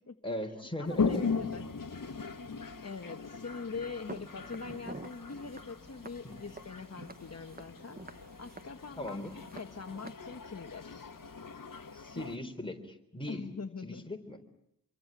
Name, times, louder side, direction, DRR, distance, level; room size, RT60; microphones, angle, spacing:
voice 1, 0.2-1.3 6.2-6.4 9.0-9.4 11.9-13.5 13.8-14.4, left 1 dB, 15° left, 3 dB, 3.9 m, -39 dB
Toilet flush, 0.8-12.4, left 5 dB, 70° left, 1.6 m, -39 dB
voice 2, 0.8-11.1 11.9-12.0 13.3-14.0, left 4 dB, 45° left, 5 dB, 1.4 m, -43 dB
Walk footsteps, 4.1-10.1, right 3 dB, 25° right, 1.0 m, -49 dB
26.5 x 24.0 x 8.9 m, 0.76 s
wide cardioid pair, 90°, 34 cm